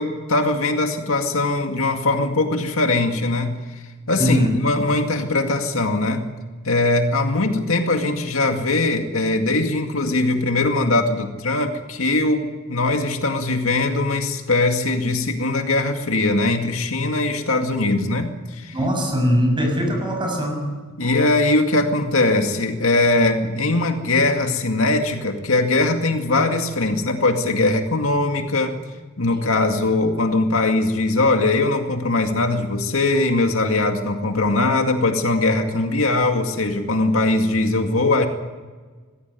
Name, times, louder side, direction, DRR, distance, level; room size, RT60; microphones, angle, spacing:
voice 1, 0.0-3.6 4.1-6.3 6.6-18.8 21.0-28.8 29.2-38.3, left 2 dB, 75° left, 4 dB, 2.2 m, -21 dB
voice 2, 4.2-4.5 18.7-20.7, equal, 25° right, 3 dB, 6.5 m, -21 dB
20.0 x 16.5 x 9.3 m, 1.4 s
head